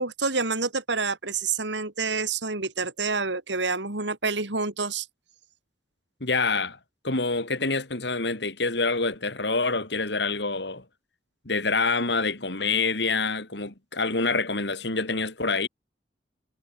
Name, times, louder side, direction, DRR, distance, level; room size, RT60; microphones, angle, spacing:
voice 1, 0.0-5.1, right 4 dB, 80° right, 3.5 m, -28 dB
voice 2, 6.2-6.8 7.0-10.8 11.4-15.7, left 3 dB, 70° left, 3.1 m, -26 dB
head